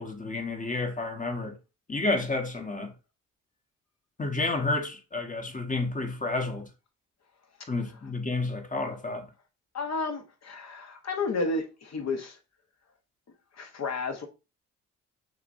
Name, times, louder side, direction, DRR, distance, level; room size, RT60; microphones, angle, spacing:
voice 1, 0.0-1.6 1.9-2.9 4.2-6.7 7.7-9.3, left 2 dB, 20° left, 1.1 m, -30 dB
voice 2, 9.7-12.4 13.6-14.3, left 3 dB, 50° left, 1.2 m, -32 dB
6.6 x 2.6 x 2.6 m
supercardioid pair, 60°, 34 cm